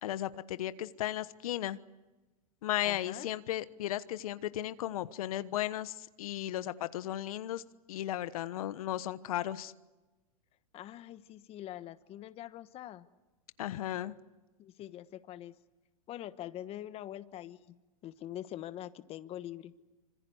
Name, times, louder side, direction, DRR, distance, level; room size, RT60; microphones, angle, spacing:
voice 1, 0.0-1.8 2.6-7.6 7.9-9.7 13.6-14.1, left 13 dB, 70° left, 14 dB, 1.2 m, -35 dB
voice 2, 2.8-3.3 10.7-13.1 14.6-15.5 16.1-17.8 18.0-19.7, left 12 dB, 30° left, 13 dB, 1.2 m, -44 dB
26.5 x 26.0 x 8.0 m, 1.1 s
hypercardioid pair, 125°, 19 cm